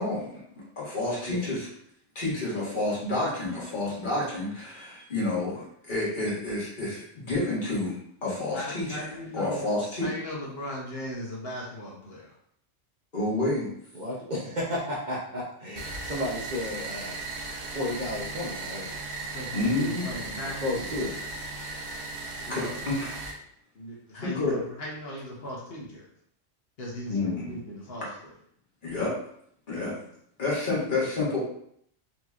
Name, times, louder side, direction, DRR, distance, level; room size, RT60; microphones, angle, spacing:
voice 1, 0.0-1.7 2.1-9.0 9.3-10.1 13.1-13.7 19.5-20.1 22.5-23.2 24.2-24.6 27.1-27.5 28.8-29.1 29.7-29.9 30.4-31.4, left 2 dB, 45° left, -7 dB, 1.5 m, -29 dB
voice 2, 8.5-9.7 10.0-12.3 19.3-21.1 22.5-23.1 23.7-26.0 26.8-28.1, left 1 dB, 60° left, -4 dB, 1.1 m, -38 dB
voice 3, 13.9-17.2 17.7-19.0 20.6-21.2 29.8-30.0, left 1 dB, 45° right, -5 dB, 0.7 m, -33 dB
sound 1, 15.8-23.3, right 3 dB, 70° right, 0.9 m, -37 dB
4.2 x 2.9 x 2.4 m, 0.68 s
omnidirectional pair, 1.2 m